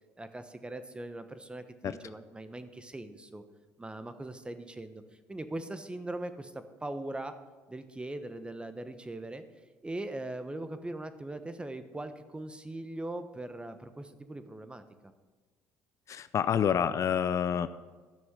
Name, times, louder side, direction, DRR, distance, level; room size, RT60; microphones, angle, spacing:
voice 1, 0.2-3.4 3.8-5.0 5.3-7.3 7.7-9.4 9.8-15.1, right 2 dB, 15° right, 10 dB, 1.2 m, -40 dB
voice 2, 16.1-17.7, left 8 dB, 50° left, 13 dB, 0.5 m, -28 dB
12.5 x 6.1 x 7.5 m, 1.4 s
supercardioid pair, 70°, 7 cm